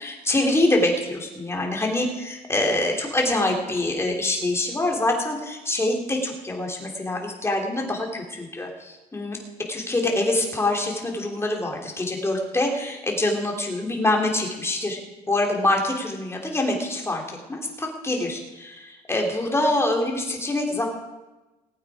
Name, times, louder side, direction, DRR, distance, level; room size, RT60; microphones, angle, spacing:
voice 1, 0.0-9.4 9.7-15.0 15.3-20.9, left 2 dB, 15° left, 1 dB, 3.1 m, -25 dB
20.0 x 8.7 x 4.9 m, 1.1 s
cardioid pair, 110°, 17 cm